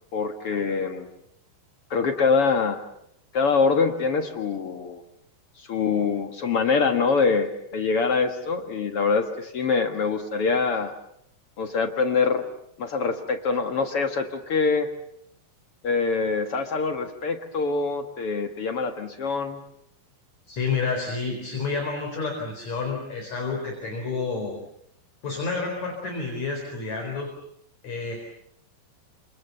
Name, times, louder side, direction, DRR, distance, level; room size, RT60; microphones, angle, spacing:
voice 1, 0.1-1.1 1.9-2.8 3.3-5.0 5.6-10.9 11.6-12.4 12.8-14.9 15.8-19.6, left 4 dB, 65° left, 6 dB, 1.4 m, -24 dB
voice 2, 20.5-24.6 25.2-27.3 27.8-28.2, left 4 dB, 40° left, 1 dB, 5.4 m, -29 dB
30.0 x 27.0 x 7.1 m, 0.72 s
omnidirectional pair, 5.1 m